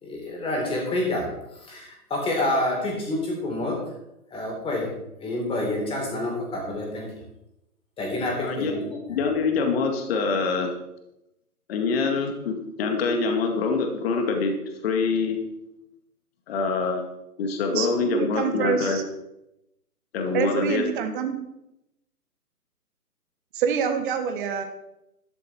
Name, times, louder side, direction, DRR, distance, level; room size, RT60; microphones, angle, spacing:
voice 1, 0.0-1.3 1.6-3.8 4.3-4.9 5.2-7.1 8.0-9.0, left 1 dB, 10° left, 0 dB, 3.9 m, -28 dB
voice 2, 8.4-8.7 9.1-10.7 11.7-14.5 14.8-15.4 16.5-17.1 17.4-19.0 20.1-20.8, left 4 dB, 40° left, 3 dB, 2.4 m, -25 dB
voice 3, 17.7-19.0 20.3-21.4 23.5-24.6, right 7 dB, 35° right, 6 dB, 1.5 m, -26 dB
13.0 x 10.5 x 4.5 m, 0.88 s
hypercardioid pair, 140°, 47 cm